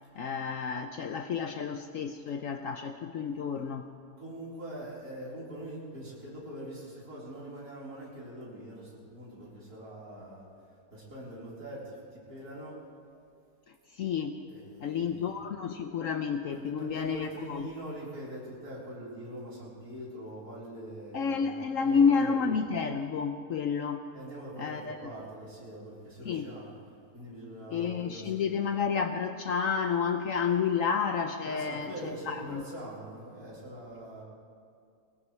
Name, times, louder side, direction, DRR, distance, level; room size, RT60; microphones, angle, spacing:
voice 1, 0.2-3.8 13.9-14.3 14.8-17.7 21.1-24.0 24.6-25.1 26.3-26.5 27.7-31.9 32.3-32.6, left 6 dB, 65° left, 7 dB, 0.9 m, -30 dB
voice 2, 4.2-10.4 10.9-12.7 14.5-15.3 16.5-22.4 24.1-26.7 27.1-28.9 31.4-34.2, right 1 dB, 65° right, -8 dB, 4.7 m, -43 dB
20.0 x 19.0 x 3.3 m, 2.4 s
omnidirectional pair, 1.7 m